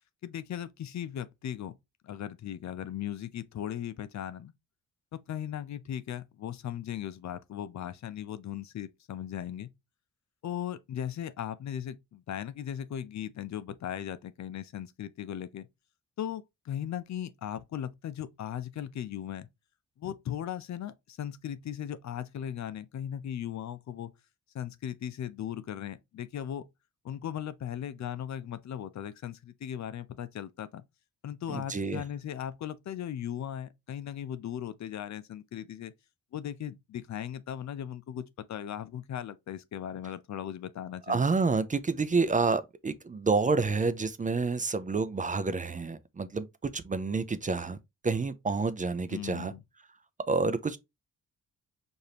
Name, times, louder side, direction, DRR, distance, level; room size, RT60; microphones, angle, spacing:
voice 1, 0.2-1.7 2.0-4.5 5.1-9.7 10.4-15.7 16.2-19.5 20.0-24.1 24.5-26.6 27.0-30.8 31.2-35.9 36.3-41.2 49.1-49.6, left 10 dB, 65° left, 0.5 m, -38 dB
voice 2, 31.5-32.0 41.1-47.8 48.0-49.5 50.3-50.8, right 4 dB, 25° right, 0.5 m, -29 dB
4.8 x 2.7 x 2.8 m
cardioid pair, 85°, 31 cm